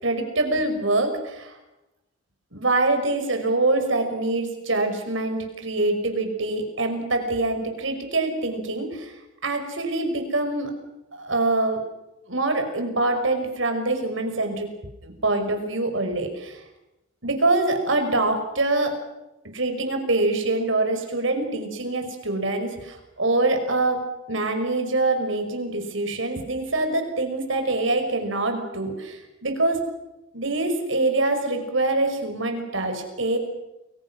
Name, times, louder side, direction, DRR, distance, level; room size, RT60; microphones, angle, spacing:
voice 1, 0.0-1.6 2.5-9.1 9.4-10.7 11.1-11.8 12.3-14.7 15.0-16.6 17.2-19.0 19.5-29.8 30.3-33.4, right 2 dB, 70° right, 6 dB, 5.7 m, -24 dB
30.0 x 23.0 x 6.3 m, 0.95 s
head